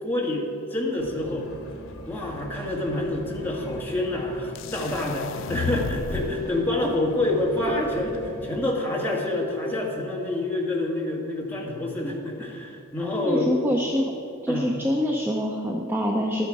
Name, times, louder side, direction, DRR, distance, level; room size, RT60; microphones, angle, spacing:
voice 1, 0.0-1.5 2.1-13.6 14.5-14.7, left 1 dB, 10° left, -3 dB, 1.6 m, -27 dB
sound 1, 1.0-8.7, left 1 dB, 80° left, 1.1 m, -42 dB
sound 2, 4.6-6.5, left 5 dB, 65° left, 0.4 m, -32 dB
voice 2, 13.2-14.1 14.4-16.5, equal, 10° right, 1 dB, 0.6 m, -25 dB
12.0 x 9.1 x 4.8 m, 2.8 s
head